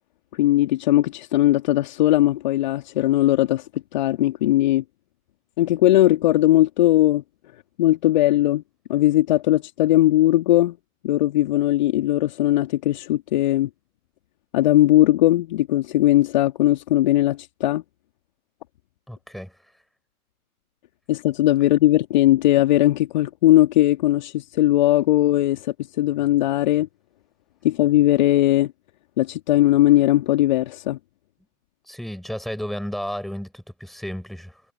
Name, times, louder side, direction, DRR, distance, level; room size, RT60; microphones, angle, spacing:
voice 1, 0.3-4.8 5.6-7.2 7.8-8.6 8.9-10.8 11.0-13.7 14.5-17.8 21.1-26.9 27.6-28.7 29.2-31.0, left 15 dB, 30° left, 2.6 m, -19 dB
voice 2, 19.1-19.5 31.9-34.6, equal, ahead, 6.4 m, -33 dB
figure-of-eight pair, 135°, 44 cm